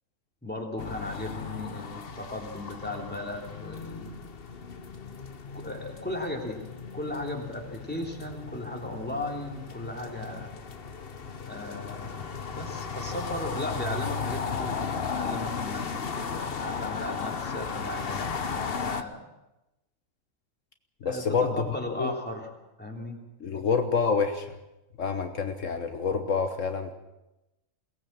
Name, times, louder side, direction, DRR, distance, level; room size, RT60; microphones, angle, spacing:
voice 1, 0.4-4.2 5.5-6.6 6.9-10.5 11.5-14.8 15.1-15.9 16.1-19.3 21.0-22.5 22.8-23.2, left 1 dB, 5° left, 1 dB, 3.1 m, -36 dB
sound 1, 0.8-19.0, left 5 dB, 50° left, 1.3 m, -35 dB
voice 2, 21.0-21.7 22.0-22.1 23.4-24.5 25.0-26.9, left 5 dB, 70° left, 7 dB, 1.5 m, -27 dB
22.5 x 18.0 x 7.4 m, 0.95 s
omnidirectional pair, 1.4 m